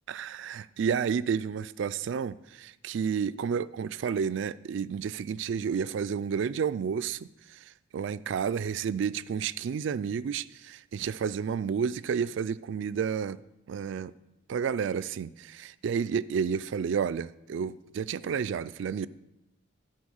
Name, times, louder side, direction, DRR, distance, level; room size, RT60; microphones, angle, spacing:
voice 1, 0.1-7.3 7.9-13.4 13.7-14.1 14.5-19.1, right 7 dB, 60° right, 17 dB, 0.3 m, -31 dB
12.0 x 4.5 x 6.3 m, 0.92 s
head